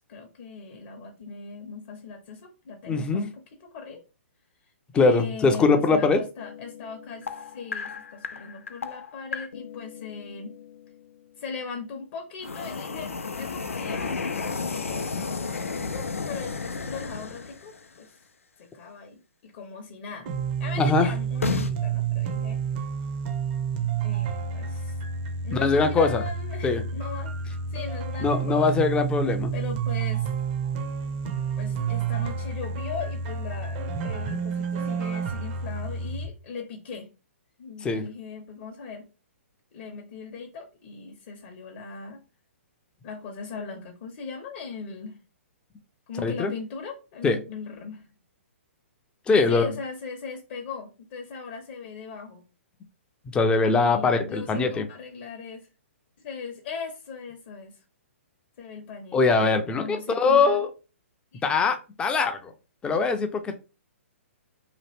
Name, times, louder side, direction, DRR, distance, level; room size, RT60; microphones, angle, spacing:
voice 1, 0.1-4.0 4.9-10.6 11.4-18.2 18.6-20.3 20.6-22.6 24.0-25.0 25.4-27.3 27.7-28.8 29.5-30.3 31.6-37.1 37.6-39.1 39.7-42.2 43.0-45.2 46.1-48.1 49.5-52.4 53.7-55.7 56.2-57.8 58.6-59.2 59.7-60.6 61.3-61.4, left 5 dB, 45° left, 2 dB, 0.7 m, -39 dB
voice 2, 2.9-3.2 4.9-6.2 20.8-21.1 25.5-26.2 26.6-26.8 28.2-29.5 37.8-38.0 46.2-46.5 47.2-47.4 49.3-49.7 53.3-54.8 59.1-60.7 61.4-62.5 62.8-63.6, left 4 dB, 15° left, 7 dB, 0.4 m, -22 dB
sound 1, 6.4-11.1 12.4-17.9 21.3-21.7, left 4 dB, 80° left, 0.4 m, -33 dB
sound 2, 20.3-36.3, right 6 dB, 40° right, 0.6 m, -30 dB
2.9 x 2.4 x 3.3 m, 0.31 s
figure-of-eight pair, 125°, 7 cm